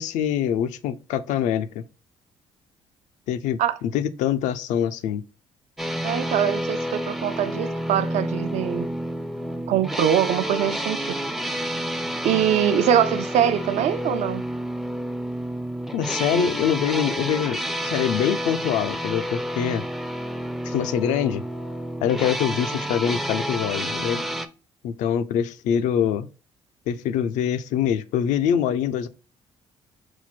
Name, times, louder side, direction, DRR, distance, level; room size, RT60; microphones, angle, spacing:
voice 1, 0.0-1.8 3.3-5.2 15.9-19.8 20.6-21.4 22.0-24.2 24.8-26.3 26.9-29.1, left 9 dB, 85° left, 0.4 m, -24 dB
sound 1, 5.8-24.5, equal, ahead, 0.4 m, -29 dB
voice 2, 6.0-8.9 9.7-11.1 12.2-14.4 16.3-16.5, right 10 dB, 70° right, 0.4 m, -23 dB
4.4 x 2.1 x 4.1 m
cardioid pair, 105°, 12 cm